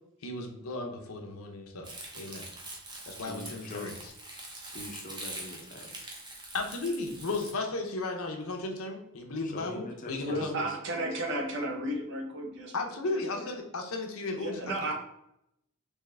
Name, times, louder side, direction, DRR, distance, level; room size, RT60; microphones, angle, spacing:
voice 1, 0.2-1.9 2.1-2.5 3.1-4.1 6.5-10.6 12.7-14.6, left 3 dB, 75° left, 3 dB, 0.7 m, -35 dB
Crumpling crinkling, 1.8-7.5, right 2 dB, 20° right, 0.6 m, -44 dB
voice 2, 3.3-3.9 4.7-6.1 9.5-10.7, left 2 dB, 40° left, 4 dB, 0.6 m, -42 dB
voice 3, 10.2-12.7 13.1-13.5 14.4-14.9, right 1 dB, 55° right, 2 dB, 0.8 m, -33 dB
3.6 x 3.1 x 3.3 m, 0.79 s
head